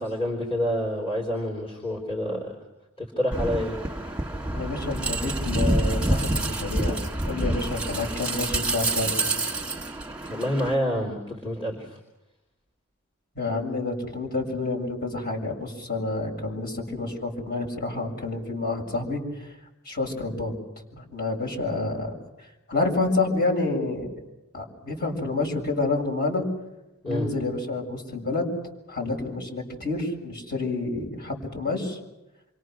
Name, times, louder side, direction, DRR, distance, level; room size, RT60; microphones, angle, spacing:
voice 1, 0.0-2.5 3.0-3.8 10.2-12.0 27.0-27.3, equal, 25° left, -1 dB, 3.9 m, -28 dB
sound 1, 3.3-10.7, right 2 dB, 5° right, 1.9 m, -27 dB
voice 2, 4.5-7.0 7.2-9.2 13.4-19.5 19.9-20.5 21.0-22.1 22.7-24.1 24.5-26.4 27.1-28.5 28.9-32.0, left 3 dB, 40° left, 0 dB, 7.1 m, -28 dB
28.5 x 25.0 x 6.5 m, 0.96 s
head